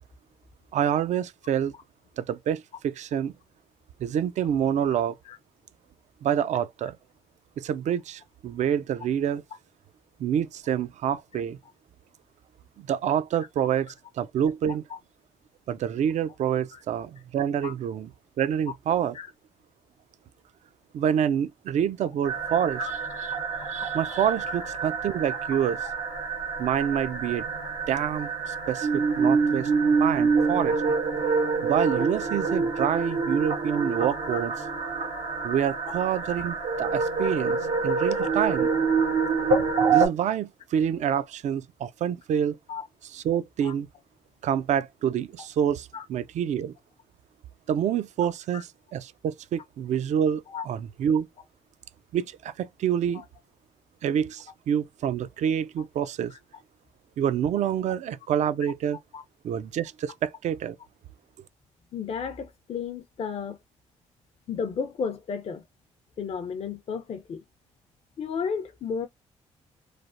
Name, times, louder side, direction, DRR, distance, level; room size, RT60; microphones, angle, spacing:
voice 1, 0.7-1.7 2.2-3.3 4.0-5.2 6.2-7.0 7.6-9.4 10.2-11.6 12.8-14.8 15.7-18.1 18.4-19.2 20.9-23.0 23.7-25.8 26.6-27.4 27.9-29.7 30.0-30.8 31.6-34.5 35.4-37.6 37.8-38.7 39.9-42.6 43.1-43.9 44.4-46.7 47.7-51.3 52.1-53.2 54.0-56.3 57.2-59.0 59.4-60.8, right 9 dB, 60° right, 0.4 m, -27 dB
sound 1, 22.2-40.1, right 4 dB, 85° right, 0.9 m, -26 dB
voice 2, 61.9-63.6 64.5-65.6 66.2-67.4 68.2-69.1, left 6 dB, 50° left, 0.5 m, -33 dB
3.2 x 2.0 x 2.5 m
supercardioid pair, 65°, 13 cm